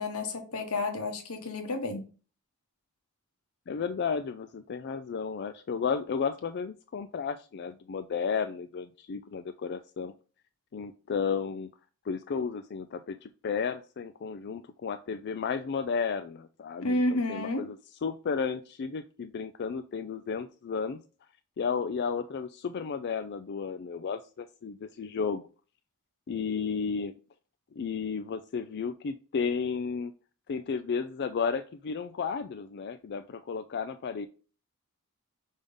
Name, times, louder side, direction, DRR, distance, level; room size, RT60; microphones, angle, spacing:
voice 1, 0.0-2.1 16.8-17.6, left 2 dB, 85° left, 1.2 m, -30 dB
voice 2, 3.7-10.1 10.7-11.7 12.1-17.8 18.0-21.0 21.6-25.4 26.3-27.1 27.7-30.1 30.5-34.3, left 6 dB, 50° left, 0.4 m, -33 dB
5.3 x 3.5 x 5.4 m
head